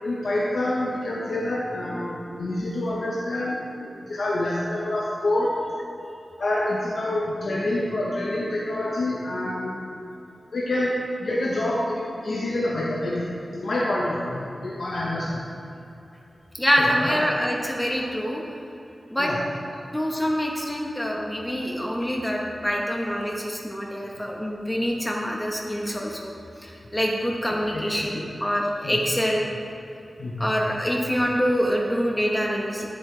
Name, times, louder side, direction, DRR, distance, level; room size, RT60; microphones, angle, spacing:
voice 1, 0.0-3.6 4.1-5.5 6.4-9.9 10.5-10.9 11.2-15.4 17.0-17.2 19.2-19.4 27.7-28.3 28.8-29.0 30.2-30.5, left 1 dB, 75° left, -6 dB, 1.1 m, -27 dB
voice 2, 16.6-18.4 19.1-19.3 19.9-26.3 26.6-29.5 30.4-32.9, equal, 10° left, -1 dB, 1.1 m, -25 dB
9.7 x 8.2 x 3.4 m, 2.9 s
wide cardioid pair, 120°, 0 cm